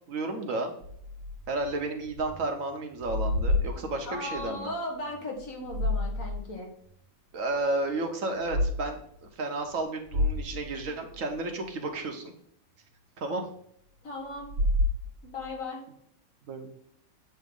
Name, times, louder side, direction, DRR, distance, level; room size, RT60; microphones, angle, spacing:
voice 1, 0.1-0.7 1.5-4.7 7.3-12.3 13.2-13.4 16.5-16.7, right 2 dB, 65° right, 4 dB, 1.3 m, -32 dB
sound 1, 0.8-2.5 2.8-4.5 5.4-6.5 6.9-7.0 8.3-8.7 9.2-9.3 9.7-9.8 10.1-11.4 14.4-15.5, left 1 dB, 90° right, 1.3 m, -30 dB
voice 2, 3.7-6.7 14.0-14.5 15.2-15.8, left 2 dB, 70° left, 1 dB, 1.7 m, -37 dB
7.9 x 2.8 x 5.2 m, 0.69 s
omnidirectional pair, 1.5 m